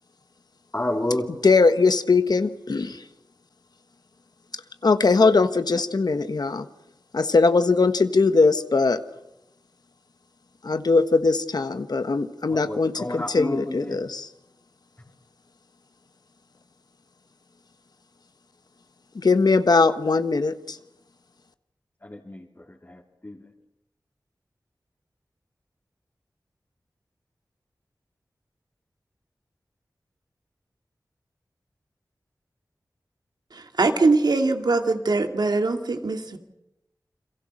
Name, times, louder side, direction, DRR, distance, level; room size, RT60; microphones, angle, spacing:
voice 1, 0.7-1.3 12.5-14.0 22.0-23.4, left 1 dB, 30° left, -1 dB, 3.0 m, -30 dB
voice 2, 1.4-3.0 4.8-6.6 7.1-9.0 10.6-14.3 19.1-20.8, left 4 dB, 70° left, 10 dB, 1.4 m, -20 dB
voice 3, 33.5-36.4, right 3 dB, 75° right, 5 dB, 2.3 m, -22 dB
29.5 x 23.0 x 6.4 m, 0.88 s
cardioid pair, 45°, 7 cm